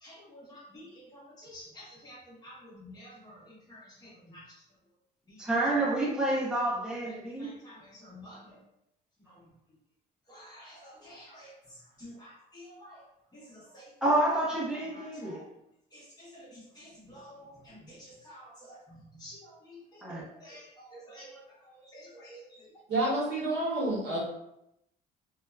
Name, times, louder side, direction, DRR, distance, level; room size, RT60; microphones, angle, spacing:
voice 1, 0.0-4.4 5.3-5.4 7.0-8.6 10.3-11.5 12.0-13.0 13.3-13.9 14.7-15.4 15.9-21.4 21.7-22.7, equal, 25° left, -6 dB, 1.1 m, -50 dB
voice 2, 5.4-7.5 14.0-15.4 20.0-20.2, right 1 dB, 5° right, -5 dB, 0.7 m, -28 dB
voice 3, 22.9-24.2, right 2 dB, 85° right, -4 dB, 0.9 m, -29 dB
2.7 x 2.1 x 2.3 m, 0.81 s
cardioid pair, 110°, 17 cm